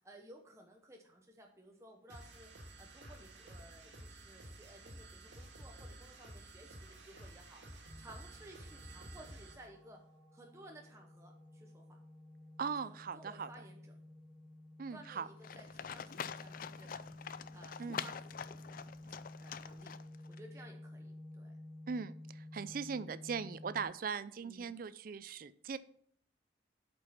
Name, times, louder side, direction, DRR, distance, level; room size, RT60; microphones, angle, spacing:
voice 1, 0.0-2.5 2.8-10.0 10.3-11.8 12.8-13.8 14.9-17.1 17.5-18.9 19.4-19.9 20.3-21.5 24.4-24.7, right 1 dB, 15° right, 1 dB, 0.9 m, -57 dB
sound 1, 2.1-9.7, right 1 dB, 75° right, 2.1 m, -52 dB
sound 2, 7.8-23.8, left 1 dB, 25° left, 1.8 m, -53 dB
voice 2, 12.6-13.5 14.8-15.3 17.8-18.0 21.9-25.8, right 5 dB, 50° right, 15 dB, 0.4 m, -40 dB
Livestock farm animals working animals, 15.4-20.4, left 7 dB, 45° left, 0.4 m, -45 dB
8.2 x 5.4 x 5.8 m, 0.62 s
head